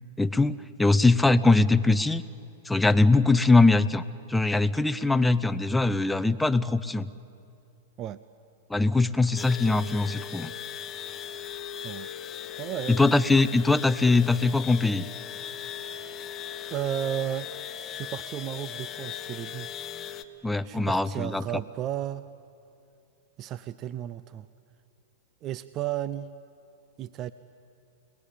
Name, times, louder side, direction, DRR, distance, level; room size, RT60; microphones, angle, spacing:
voice 1, 0.2-2.2 2.7-4.0 4.3-7.1 8.7-10.5 12.9-15.0 20.4-21.4, left 3 dB, 5° left, 12 dB, 0.7 m, -22 dB
sound 1, 9.4-20.2, left 9 dB, 30° left, 1.2 m, -38 dB
voice 2, 12.6-13.1 16.7-17.5 17.9-19.7 20.6-22.3 23.4-24.5 25.4-26.3 27.0-27.3, right 11 dB, 35° right, 15 dB, 0.6 m, -33 dB
29.5 x 19.5 x 8.6 m, 2.6 s
hypercardioid pair, 125°, 0 cm